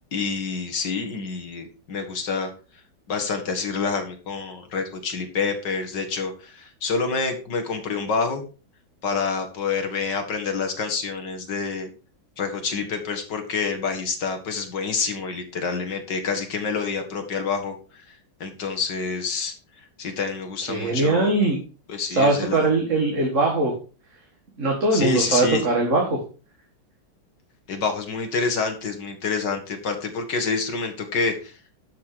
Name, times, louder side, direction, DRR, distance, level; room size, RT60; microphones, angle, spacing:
voice 1, 0.1-2.5 3.1-8.4 9.0-11.9 12.4-21.3 21.9-22.7 24.9-25.6 27.7-31.6, left 4 dB, 65° left, 5 dB, 2.4 m, -27 dB
voice 2, 20.7-21.6 22.1-23.7 24.6-26.2, right 2 dB, 40° right, 0 dB, 2.2 m, -21 dB
11.5 x 5.9 x 4.9 m, 0.35 s
omnidirectional pair, 2.1 m